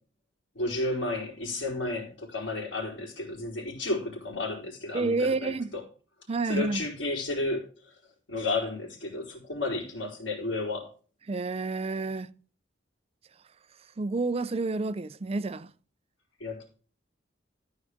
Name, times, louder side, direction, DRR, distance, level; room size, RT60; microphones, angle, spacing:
voice 1, 0.5-5.5 6.5-7.9 8.3-10.9 16.4-16.7, left 2 dB, 80° left, 4.1 m, -32 dB
voice 2, 4.9-5.7 6.3-6.9 11.3-12.3 14.0-15.7, right 3 dB, 35° right, 0.4 m, -29 dB
13.0 x 4.9 x 6.5 m
head